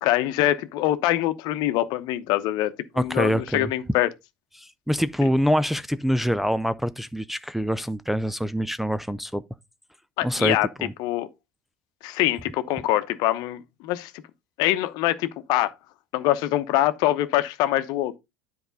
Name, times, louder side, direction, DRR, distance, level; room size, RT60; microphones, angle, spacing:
voice 1, 0.0-4.1 10.2-10.7 11.0-11.3 12.0-14.1 14.6-15.7 16.1-18.2, left 14 dB, 55° left, 0.9 m, -24 dB
voice 2, 3.0-3.7 4.6-9.4 10.2-10.9, equal, ahead, 0.4 m, -25 dB
10.0 x 4.7 x 4.0 m
hypercardioid pair, 75°, 8 cm